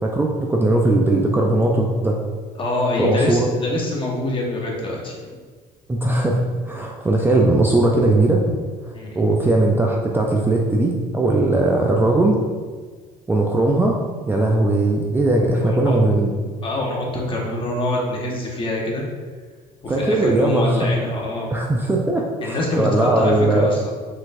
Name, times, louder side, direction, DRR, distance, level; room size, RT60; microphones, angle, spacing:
voice 1, 0.0-2.2 3.0-3.5 5.9-6.4 6.6-8.4 9.2-12.4 13.3-14.0 14.3-16.3 19.9-20.9 21.5-23.7, right 2 dB, 15° right, -1 dB, 0.5 m, -19 dB
voice 2, 2.5-5.3 8.9-9.2 15.6-16.0 16.6-19.0 19.8-21.5 22.4-23.9, left 1 dB, 35° left, -2 dB, 1.2 m, -25 dB
4.8 x 3.9 x 2.5 m, 1.5 s
cardioid pair, 95°, 16 cm